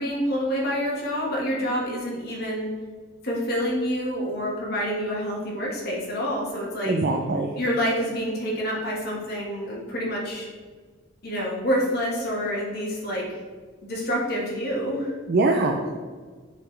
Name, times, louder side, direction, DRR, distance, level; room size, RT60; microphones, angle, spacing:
voice 1, 0.0-2.7 3.2-6.9 7.6-10.5 11.2-13.3 13.8-15.1, equal, 55° left, -3 dB, 1.5 m, -27 dB
voice 2, 6.8-7.5 15.3-15.9, right 2 dB, 55° right, 3 dB, 0.4 m, -22 dB
7.5 x 4.1 x 3.2 m, 1.5 s
head